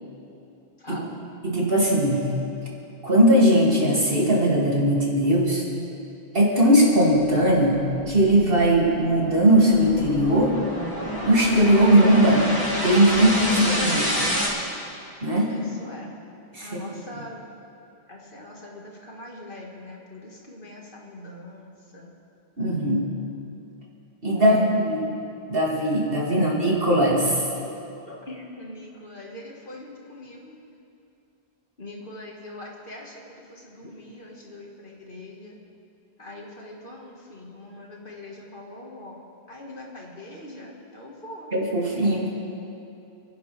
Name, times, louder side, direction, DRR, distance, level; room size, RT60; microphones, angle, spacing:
voice 1, 0.8-1.1 13.6-13.9 15.5-16.1 16.6-17.4 18.1-22.1 24.3-24.7 28.0-30.6 31.8-35.6 36.2-39.2 39.5-41.5, left 2 dB, 55° left, -2 dB, 2.1 m, -41 dB
voice 2, 1.4-2.3 3.0-5.6 6.3-10.6 11.2-12.5 12.8-14.1 15.2-15.5 16.5-16.8 17.1-17.2 22.6-23.0 24.2-25.0 25.5-27.4 41.5-42.4, right 1 dB, 60° right, -4 dB, 3.0 m, -19 dB
sound 1, 7.7-14.5, equal, 20° left, 2.5 m, -29 dB
29.0 x 10.0 x 3.5 m, 2.7 s
omnidirectional pair, 1.1 m